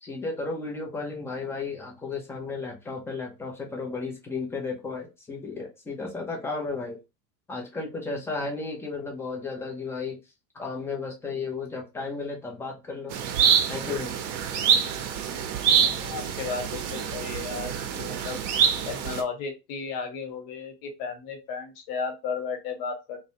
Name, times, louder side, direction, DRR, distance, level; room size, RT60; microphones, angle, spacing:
voice 1, 0.0-7.0 7.5-10.2 10.5-13.2 13.7-14.1, left 4 dB, 5° left, 0 dB, 0.3 m, -34 dB
sound 1, 13.1-19.2, right 7 dB, 45° right, 0.6 m, -25 dB
voice 2, 15.7-18.4 18.9-23.2, left 5 dB, 50° left, 4 dB, 1.1 m, -34 dB
2.4 x 2.1 x 2.8 m, 0.25 s
hypercardioid pair, 90°, 49 cm